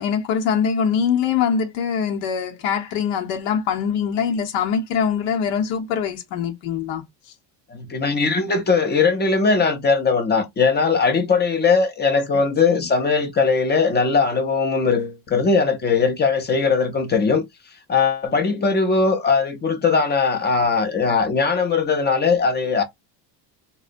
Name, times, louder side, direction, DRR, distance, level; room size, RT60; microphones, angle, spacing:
voice 1, 0.0-7.0 12.8-12.9, left 7 dB, 80° left, 0.9 m, -23 dB
voice 2, 7.7-17.5 17.9-22.8, left 4 dB, 20° left, 0.5 m, -19 dB
3.7 x 2.1 x 2.5 m
cardioid pair, 120°, 49 cm